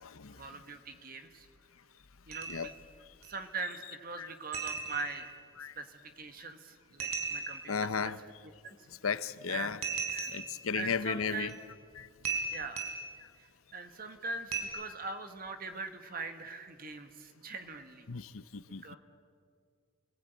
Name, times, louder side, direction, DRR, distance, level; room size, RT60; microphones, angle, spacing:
voice 1, 0.3-1.5 2.3-2.7 3.2-5.3 5.6-8.1 8.6-8.9 9.5-9.7 10.7-11.6 12.5-12.8 13.4-18.1 18.8-19.0, right 4 dB, 40° right, 8 dB, 1.6 m, -41 dB
sound 1, 2.3-2.8 3.2-3.3 4.5-5.3 7.0-7.7 9.8-10.6 11.5-11.6 12.2-13.2 14.5-14.6, right 5 dB, 90° right, 3.9 m, -37 dB
voice 2, 7.7-8.2 9.0-9.8 10.1-11.5 12.0-12.1 18.1-18.8, left 6 dB, 80° left, 15 dB, 0.9 m, -35 dB
28.5 x 19.5 x 9.4 m, 2.1 s
head